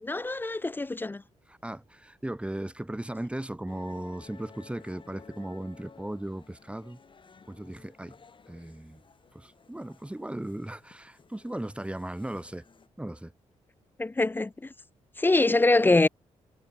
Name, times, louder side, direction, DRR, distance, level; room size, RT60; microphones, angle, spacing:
voice 1, 0.0-1.2 14.0-14.5 15.2-16.1, left 2 dB, 15° left, 0.4 m, -23 dB
voice 2, 1.5-7.0 7.5-8.2 8.5-9.0 9.3-12.6 13.0-13.3, right 1 dB, 10° right, 2.9 m, -37 dB
sound 1, 3.7-12.9, left 5 dB, 40° left, 3.2 m, -55 dB
cardioid pair, 90°, 13 cm